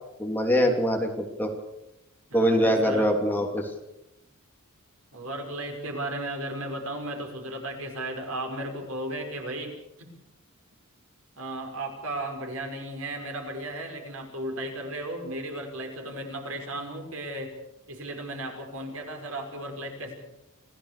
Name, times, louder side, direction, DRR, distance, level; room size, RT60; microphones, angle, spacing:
voice 1, 0.2-1.5 2.3-3.7, equal, 10° left, 2 dB, 3.1 m, -23 dB
voice 2, 2.3-3.1 5.1-9.7 10.0-10.1 11.4-17.5 17.9-20.1, right 1 dB, 75° right, 3 dB, 5.5 m, -35 dB
26.5 x 16.5 x 6.8 m, 0.87 s
head